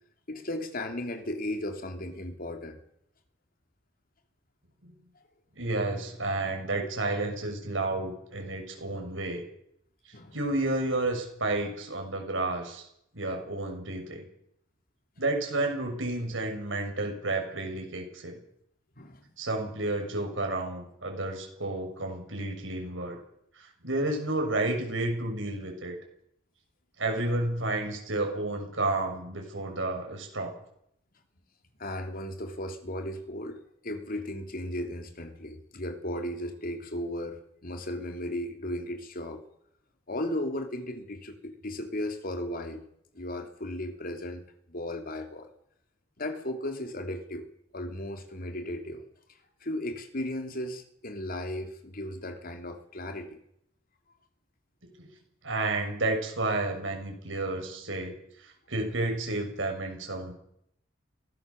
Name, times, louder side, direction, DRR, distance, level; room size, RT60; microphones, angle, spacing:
voice 1, 0.3-2.8 10.1-10.4 19.0-19.3 31.8-39.4 40.1-42.8 43.1-45.5 46.2-47.5 47.7-49.0 49.6-53.4, left 1 dB, 50° left, 5 dB, 3.1 m, -36 dB
voice 2, 5.5-9.4 10.0-12.8 13.1-14.3 15.2-18.4 19.4-23.2 23.6-25.9 27.0-30.5 55.0-55.1 55.4-58.1 58.4-60.3, right 2 dB, 80° right, 2 dB, 6.7 m, -31 dB
23.5 x 18.0 x 7.2 m, 0.73 s
head